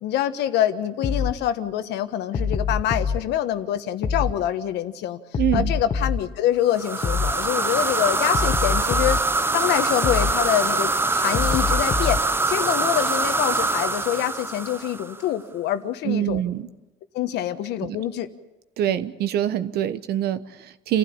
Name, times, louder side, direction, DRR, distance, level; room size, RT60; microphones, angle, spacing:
voice 1, 0.0-5.2 5.5-9.2 9.5-12.2 12.5-16.4 17.1-18.3, left 12 dB, 85° left, 10 dB, 1.4 m, -25 dB
sound 1, 1.0-1.4 2.3-3.2 4.0-4.4 5.3-6.2 7.0-7.4 8.3-9.2 10.0-10.4 11.3-12.2, left 5 dB, 40° left, 1.6 m, -24 dB
voice 2, 5.4-5.7 16.0-16.7 17.8-18.0 18.8-21.0, right 11 dB, 70° right, 13 dB, 1.1 m, -25 dB
sound 2, 6.7-15.2, right 3 dB, 15° right, 0.7 m, -24 dB
28.0 x 15.5 x 8.7 m, 1.0 s
cardioid pair, 110°, 17 cm